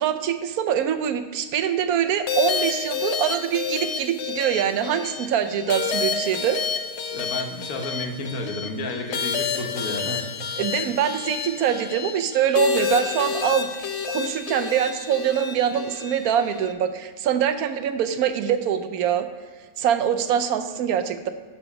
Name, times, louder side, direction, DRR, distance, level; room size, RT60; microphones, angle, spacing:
voice 1, 0.0-6.6 10.6-13.7 14.1-19.3 19.8-21.3, right 9 dB, 90° right, 9 dB, 1.1 m, -24 dB
sound 1, 2.3-16.7, left 6 dB, 60° left, 0.9 m, -29 dB
voice 2, 7.1-10.6, left 2 dB, 80° left, 3 dB, 1.5 m, -31 dB
12.0 x 4.0 x 4.8 m, 1.5 s
omnidirectional pair, 1.5 m